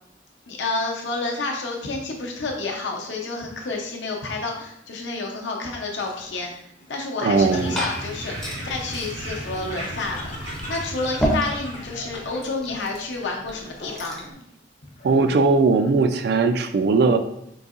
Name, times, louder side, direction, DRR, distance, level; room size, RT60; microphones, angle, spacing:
voice 1, 0.5-6.5 6.9-14.4, left 3 dB, 80° left, 1 dB, 0.7 m, -30 dB
Laughter, 6.0-14.4 14.8-15.5, left 2 dB, 45° left, 0.6 m, -42 dB
voice 2, 7.2-7.8 15.0-17.2, right 4 dB, 60° right, 7 dB, 0.3 m, -19 dB
Liquid, 7.3-14.3, equal, 5° left, 0.5 m, -33 dB
sound 1, 7.3-12.4, right 1 dB, 80° right, 0.8 m, -36 dB
3.9 x 2.7 x 2.4 m, 0.75 s
head